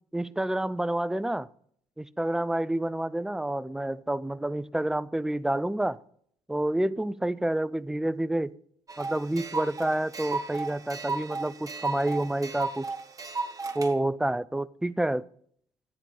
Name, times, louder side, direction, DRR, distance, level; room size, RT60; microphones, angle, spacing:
voice 1, 0.1-1.5 2.0-6.0 6.5-8.5 9.0-12.9 13.7-15.2, right 1 dB, 5° right, 0.5 m, -28 dB
sound 1, 8.9-13.9, right 3 dB, 30° right, 1.7 m, -34 dB
13.0 x 9.9 x 3.9 m
supercardioid pair, 60°, 12 cm